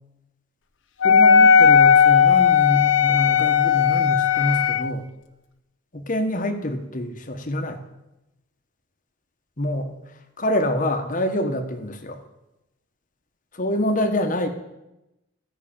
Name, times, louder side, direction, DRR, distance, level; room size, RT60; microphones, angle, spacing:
Wind instrument woodwind instrument, 1.0-4.9, left 7 dB, 75° left, 0.8 m, -16 dB
voice 1, 1.0-5.0 5.9-7.8 9.6-9.9 10.4-12.2 13.5-14.5, left 1 dB, 45° left, 5 dB, 1.3 m, -26 dB
14.0 x 5.9 x 8.8 m, 0.95 s
head